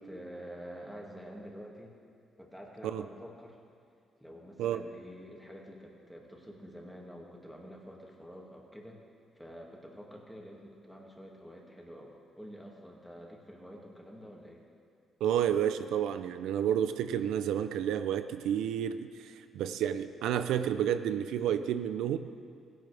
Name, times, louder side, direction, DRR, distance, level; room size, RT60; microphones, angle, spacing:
voice 1, 0.1-1.9 2.4-3.6 4.2-9.0 9.4-14.6, equal, ahead, -2 dB, 2.1 m, -48 dB
voice 2, 15.2-22.2, right 9 dB, 85° right, 11 dB, 0.5 m, -30 dB
16.0 x 11.0 x 3.4 m, 2.3 s
cardioid pair, 90°, 0 cm